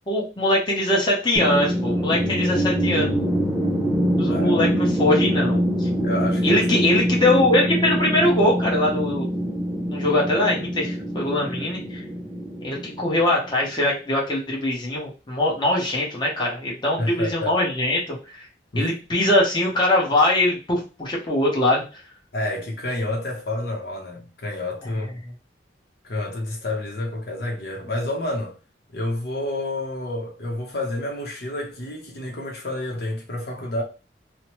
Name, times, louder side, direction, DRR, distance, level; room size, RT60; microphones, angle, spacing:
voice 1, 0.1-3.1 4.2-5.9 6.4-9.3 9.9-12.0 12.6-18.5 18.7-22.0, left 1 dB, 25° left, 0.9 m, -22 dB
sound 1, 1.4-13.5, equal, 10° right, 0.4 m, -24 dB
voice 2, 4.3-4.7 6.0-6.7 17.0-17.6 18.7-18.9 22.3-25.2 26.0-28.5 28.9-33.8, left 1 dB, 60° left, 0.8 m, -29 dB
3.0 x 2.0 x 2.9 m
head